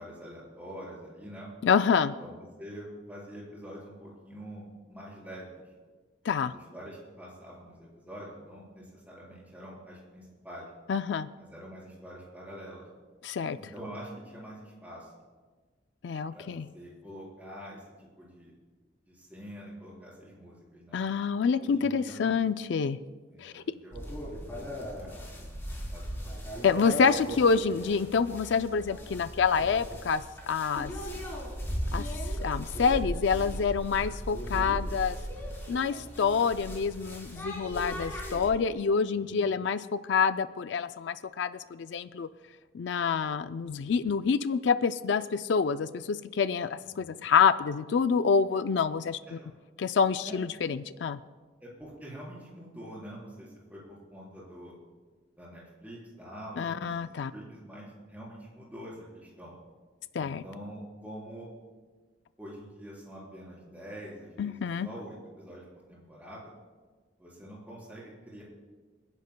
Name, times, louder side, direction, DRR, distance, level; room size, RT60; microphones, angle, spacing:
voice 1, 0.0-1.5 2.2-5.6 6.4-10.7 11.4-12.8 13.6-15.1 16.3-18.5 19.1-21.0 21.6-22.4 23.3-24.1 24.5-24.7 25.0-26.3 31.0-31.2 39.2-39.5 46.8-47.2 49.3-49.5 50.2-50.4 51.6-54.8 55.4-59.6 60.2-61.5 62.4-66.5 67.2-68.4, equal, 10° right, -5 dB, 4.1 m, -46 dB
voice 2, 1.6-2.1 6.2-6.5 10.9-11.3 13.2-13.6 16.0-16.7 20.9-23.0 23.4-23.6 26.6-30.9 31.9-35.2 35.7-42.3 42.7-49.4 49.8-51.2 56.6-57.3 60.1-60.4 64.4-64.9, left 6 dB, 70° left, 12 dB, 0.4 m, -27 dB
sound 1, 23.9-38.5, equal, 15° left, 3.4 m, -37 dB
28.0 x 10.5 x 2.2 m, 1.4 s
head